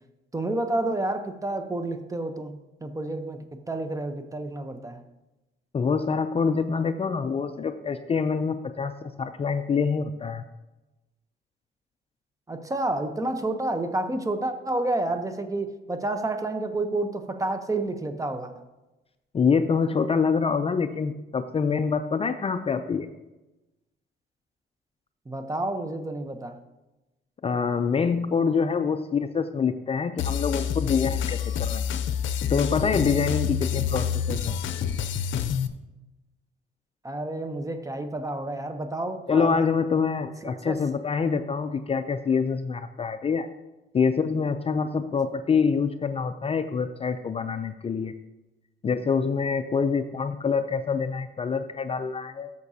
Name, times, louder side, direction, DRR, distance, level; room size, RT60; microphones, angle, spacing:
voice 1, 0.3-2.5 2.8-5.0 12.5-18.5 25.3-26.6 37.0-39.6 40.4-40.7, right 2 dB, 15° right, 8 dB, 0.8 m, -29 dB
voice 2, 5.7-10.4 19.3-23.1 27.4-31.9 32.5-34.6 39.3-43.5 43.9-48.1 48.8-52.5, left 5 dB, 30° left, 8 dB, 0.4 m, -26 dB
sound 1, 30.2-35.7, left 8 dB, 75° left, 0.6 m, -27 dB
13.0 x 6.7 x 2.8 m, 1.0 s
cardioid pair, 90°, 20 cm